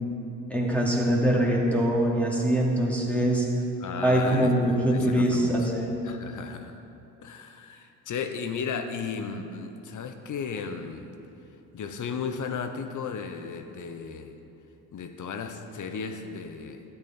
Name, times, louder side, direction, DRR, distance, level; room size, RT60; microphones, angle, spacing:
voice 1, 0.5-3.5 4.0-5.9, right 1 dB, 5° left, -4 dB, 2.7 m, -23 dB
voice 2, 3.8-5.7 6.0-6.7 7.2-11.1 11.7-14.4 14.9-16.8, left 5 dB, 45° left, 7 dB, 1.1 m, -35 dB
13.5 x 8.7 x 4.4 m, 2.8 s
hypercardioid pair, 60°, 43 cm